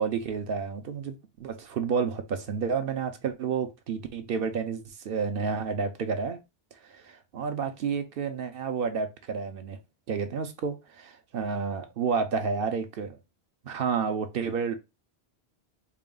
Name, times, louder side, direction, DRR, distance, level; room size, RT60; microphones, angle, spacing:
voice 1, 0.0-6.4 6.8-9.8 10.1-13.2 13.6-14.8, right 5 dB, 65° right, 0.8 m, -30 dB
4.1 x 2.3 x 3.7 m
omnidirectional pair, 1.1 m